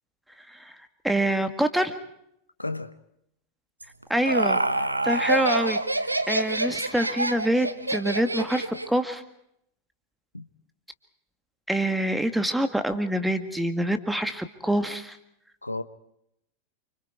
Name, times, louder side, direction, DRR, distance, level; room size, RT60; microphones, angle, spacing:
voice 1, 1.0-2.0 4.1-4.6 5.0-5.8 6.3-9.2 11.7-15.2, right 1 dB, 5° right, 1.9 m, -26 dB
voice 2, 2.6-3.0 10.3-10.5 15.6-15.8, left 2 dB, 85° left, 1.0 m, -32 dB
Laughter, 3.8-9.0, right 2 dB, 85° right, 1.2 m, -26 dB
28.5 x 26.0 x 4.7 m
figure-of-eight pair, 90°, 0 cm